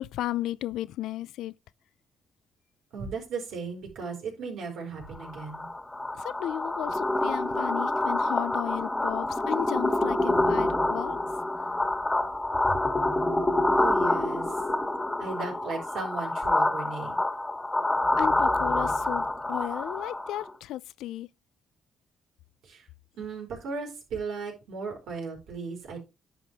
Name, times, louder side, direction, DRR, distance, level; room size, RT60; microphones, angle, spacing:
voice 1, 0.0-1.5 6.2-11.2 18.2-21.3, left 13 dB, 85° left, 0.4 m, -34 dB
voice 2, 2.9-5.7 13.8-14.5 15.2-17.2 22.6-22.9 23.2-26.0, right 4 dB, 75° right, 4.9 m, -36 dB
sound 1, 5.2-20.5, left 2 dB, 15° left, 1.6 m, -27 dB
10.5 x 5.9 x 3.5 m
cardioid pair, 90°, 0 cm